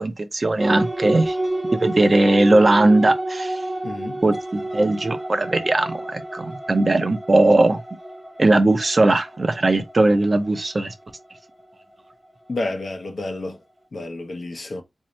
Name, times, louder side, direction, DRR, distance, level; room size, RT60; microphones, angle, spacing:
voice 1, 0.0-1.4 1.7-3.6 4.2-7.8 8.4-10.9, right 2 dB, 40° right, 0.6 m, -19 dB
sound 1, 0.6-12.5, right 1 dB, 5° right, 0.7 m, -30 dB
voice 2, 3.8-4.2 12.5-13.6 13.9-14.8, left 2 dB, 55° left, 0.9 m, -30 dB
4.0 x 2.7 x 3.1 m
wide cardioid pair, 110°, 0 cm